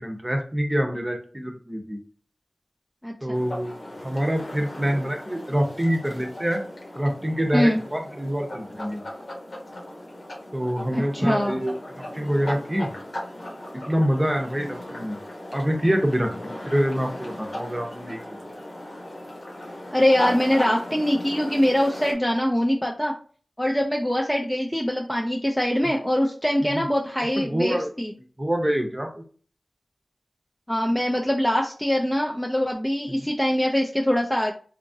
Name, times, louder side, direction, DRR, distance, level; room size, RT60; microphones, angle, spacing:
voice 1, 0.0-2.0 3.2-6.6 7.0-9.0 10.5-12.9 13.9-15.2 15.5-18.4 26.6-26.9 27.4-27.9 28.4-29.2 33.1-33.2, equal, 20° right, 3 dB, 0.7 m, -26 dB
voice 2, 3.0-3.4 7.5-7.8 10.9-11.6 19.9-23.1 23.6-28.1 30.7-34.5, equal, 10° left, 0 dB, 0.4 m, -23 dB
sound 1, 3.3-22.1, left 1 dB, 75° left, 1.0 m, -37 dB
2.8 x 2.4 x 2.6 m, 0.42 s
wide cardioid pair, 45°, 0 cm